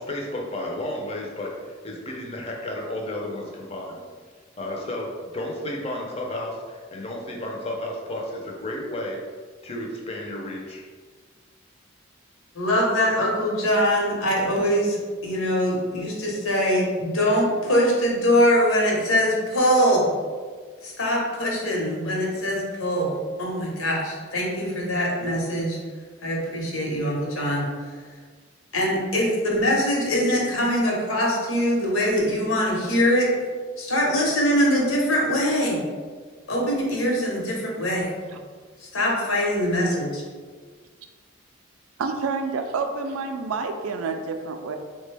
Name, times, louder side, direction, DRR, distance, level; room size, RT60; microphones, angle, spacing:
voice 1, 0.0-4.0 4.6-9.3 9.6-10.8, left 1 dB, 30° left, -1 dB, 0.5 m, -32 dB
voice 2, 12.5-20.1 20.8-23.1 23.4-25.8 26.2-28.0 28.7-33.3 33.8-35.9 36.5-38.1 38.8-40.2, equal, 85° left, -2 dB, 0.9 m, -23 dB
voice 3, 42.0-44.8, right 4 dB, 90° right, 6 dB, 0.4 m, -28 dB
3.8 x 2.2 x 3.3 m, 1.6 s
head